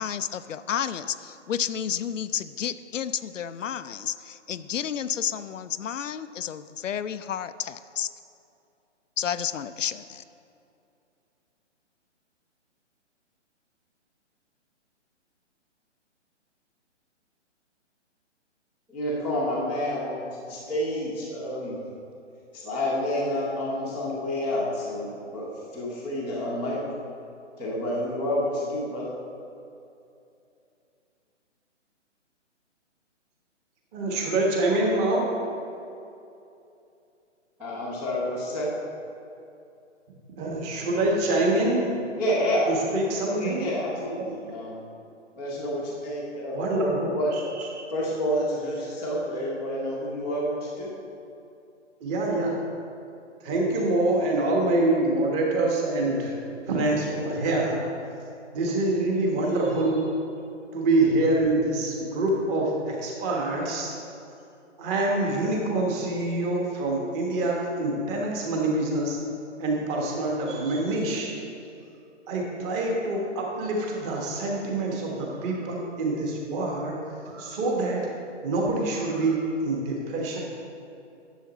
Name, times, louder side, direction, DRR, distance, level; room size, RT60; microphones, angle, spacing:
voice 1, 0.0-8.1 9.2-10.2, left 8 dB, 80° left, 13 dB, 0.5 m, -31 dB
voice 2, 18.9-21.8 22.5-26.8 27.6-29.1 37.6-38.7 42.2-44.8 45.4-47.4 47.9-50.9, equal, 5° right, -11 dB, 0.5 m, -29 dB
voice 3, 33.9-35.3 40.4-41.9 42.7-43.7 44.2-44.3 46.5-47.7 52.0-52.5 53.4-56.3 56.7-57.8 58.5-60.1 60.7-63.9 64.8-69.2 69.6-71.3 72.3-77.0 77.2-78.0 78.4-80.4, right 2 dB, 20° right, -1 dB, 1.3 m, -25 dB
10.0 x 7.1 x 4.1 m, 2.7 s
hypercardioid pair, 145°, 37 cm